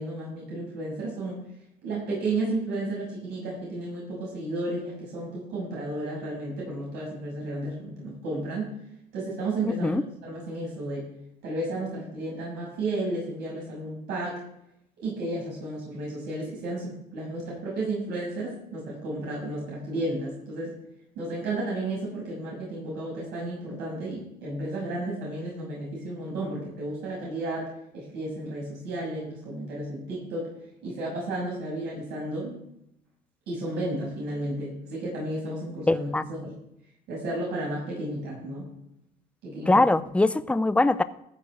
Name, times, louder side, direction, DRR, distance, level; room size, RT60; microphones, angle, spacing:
voice 1, 0.0-1.4 1.8-8.7 9.1-11.1 11.4-14.4 15.0-20.7 21.1-30.5 30.8-32.6 33.5-36.6 37.1-38.7 39.4-39.9, right 2 dB, 80° right, -4 dB, 6.7 m, -33 dB
voice 2, 35.9-36.2 39.7-41.0, left 2 dB, 5° left, 13 dB, 0.6 m, -22 dB
15.0 x 6.3 x 8.0 m, 0.77 s
cardioid pair, 110°, 17 cm